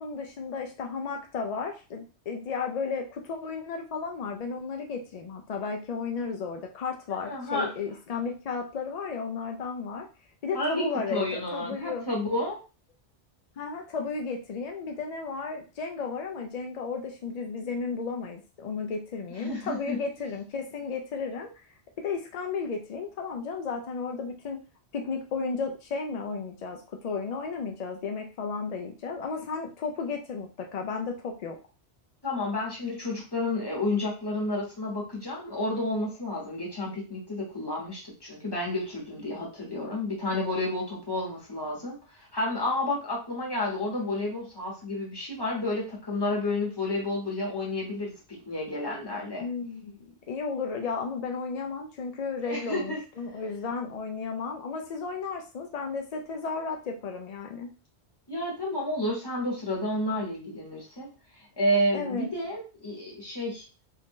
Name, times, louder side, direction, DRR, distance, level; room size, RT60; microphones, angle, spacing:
voice 1, 0.0-10.1 10.4-12.0 13.6-21.6 22.0-24.6 24.9-31.6 49.4-57.7 61.9-62.3, left 5 dB, 65° left, 3 dB, 0.4 m, -34 dB
voice 2, 7.2-7.7 10.5-12.6 19.4-20.0 32.2-49.4 52.5-53.0 58.3-61.1 61.6-63.6, left 1 dB, 20° left, -3 dB, 1.1 m, -30 dB
2.7 x 2.5 x 3.6 m, 0.33 s
omnidirectional pair, 1.2 m